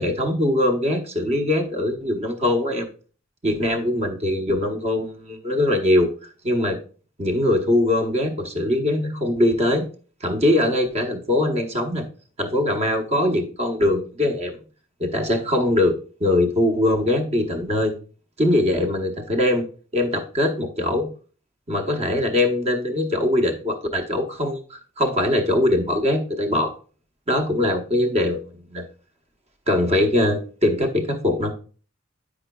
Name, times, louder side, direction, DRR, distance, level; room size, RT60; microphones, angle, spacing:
voice 1, 0.0-2.9 3.4-6.1 6.4-6.8 7.2-9.9 10.2-12.0 12.4-14.6 15.0-17.9 18.4-19.7 19.9-21.1 21.7-26.7 27.3-28.4 28.7-28.8 29.7-31.5, left 1 dB, 35° right, 4 dB, 1.0 m, -22 dB
9.3 x 5.0 x 2.3 m, 0.40 s
head